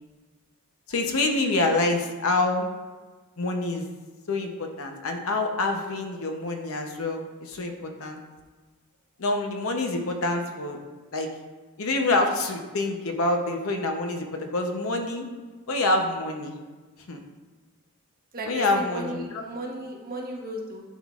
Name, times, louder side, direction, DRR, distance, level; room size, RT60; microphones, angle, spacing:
voice 1, 0.9-2.7 3.4-3.9 4.3-8.2 9.2-10.8 11.1-11.3 11.8-15.3 15.7-16.6 17.1-17.2 18.4-19.4, left 2 dB, 75° left, 3 dB, 0.7 m, -26 dB
voice 2, 18.3-20.8, equal, 40° right, -1 dB, 0.9 m, -35 dB
11.0 x 3.7 x 2.4 m, 1.3 s
head